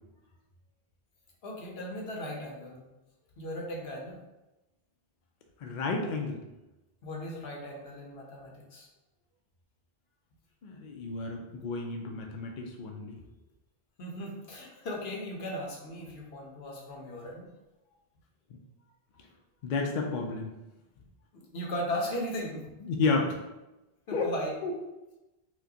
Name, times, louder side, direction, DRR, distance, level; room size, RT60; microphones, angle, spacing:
voice 1, 1.4-2.8 3.4-4.2 7.0-8.9 14.0-17.5 21.3-22.7 24.1-24.5, left 1 dB, 80° left, -2 dB, 1.0 m, -37 dB
voice 2, 5.6-6.4 10.6-13.2 19.6-20.5 22.8-23.4 24.1-24.3 24.6-24.7, left 4 dB, 60° left, 1 dB, 0.6 m, -31 dB
4.4 x 2.2 x 2.8 m, 1.0 s
omnidirectional pair, 1.0 m